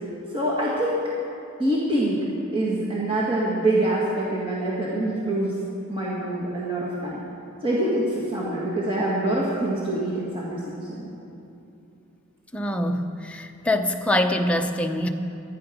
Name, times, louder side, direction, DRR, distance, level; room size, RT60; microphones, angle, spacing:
voice 1, 0.3-1.0 1.6-2.2 2.5-5.6 5.9-7.3 7.6-11.1, right 1 dB, 25° right, -6 dB, 1.8 m, -25 dB
voice 2, 12.5-15.1, left 1 dB, 5° left, 3 dB, 0.7 m, -24 dB
15.0 x 12.5 x 5.1 m, 2.8 s
head